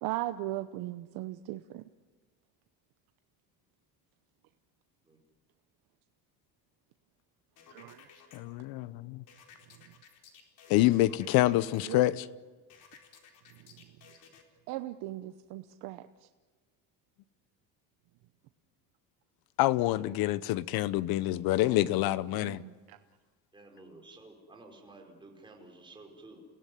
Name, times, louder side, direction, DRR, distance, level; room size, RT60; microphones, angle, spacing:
voice 1, 0.0-1.8 7.7-8.0 11.8-12.0 13.6-13.7 14.7-16.1 22.3-23.0, right 16 dB, 80° right, 0.9 m, -38 dB
sound 1, 7.6-8.4 9.3-11.8 12.7-14.4, left 6 dB, 55° left, 4.1 m, -56 dB
voice 2, 8.3-9.2 10.7-12.2 19.6-22.6, left 16 dB, 75° left, 1.0 m, -27 dB
voice 3, 23.5-26.4, right 2 dB, 15° right, 5.0 m, -52 dB
29.0 x 17.0 x 9.5 m
cardioid pair, 145°, 37 cm